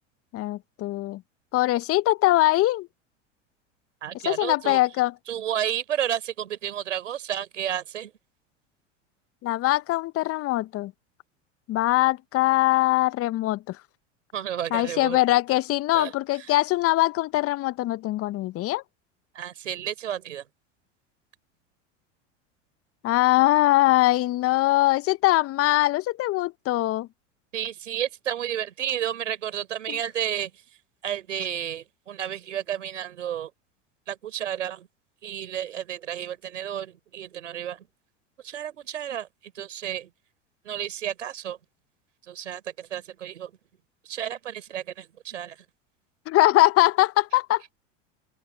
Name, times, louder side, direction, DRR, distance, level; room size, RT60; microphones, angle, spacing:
voice 1, 0.3-1.2 1.5-2.9 4.2-5.1 9.4-10.9 11.7-13.8 14.7-18.8 23.0-27.1 29.9-30.0 46.3-47.6, left 17 dB, 40° left, 0.8 m, -22 dB
voice 2, 4.0-4.8 5.3-8.1 14.3-15.2 15.9-16.1 19.3-20.4 27.5-30.5 31.0-33.5 34.1-34.9 35.2-37.8 38.4-39.3 39.6-40.1 40.7-41.6 42.3-43.5 44.1-45.5, right 10 dB, 85° right, 4.2 m, -31 dB
open air
hypercardioid pair, 90°, 36 cm